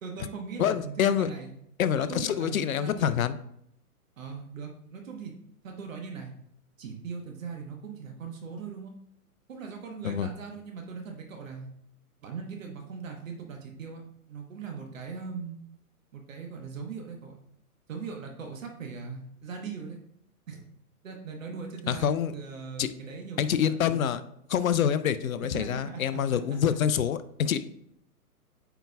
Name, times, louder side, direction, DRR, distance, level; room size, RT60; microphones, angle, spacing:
voice 1, 0.0-1.5 2.0-3.4 4.2-5.3 5.6-6.3 6.8-8.9 9.5-11.7 12.2-14.0 14.3-15.6 16.1-17.3 17.9-20.0 20.5-20.6 21.0-24.1 25.5-26.8, right 5 dB, 60° right, 2 dB, 1.2 m, -40 dB
voice 2, 0.6-1.3 1.8-3.4 10.0-10.3 21.9-22.3 22.8-22.9 23.4-24.2 24.5-27.6, left 9 dB, 65° left, 14 dB, 0.6 m, -26 dB
8.9 x 4.6 x 2.3 m, 0.74 s
hypercardioid pair, 130°, 45 cm